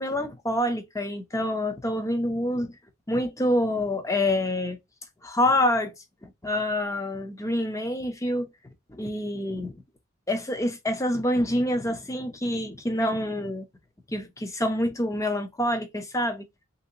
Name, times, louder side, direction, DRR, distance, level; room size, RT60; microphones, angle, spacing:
voice 1, 0.0-2.7 3.1-4.8 5.2-5.9 6.2-8.5 8.9-9.7 10.3-13.7 14.1-16.4, left 1 dB, 15° left, 0.5 m, -27 dB
3.2 x 2.7 x 2.7 m
head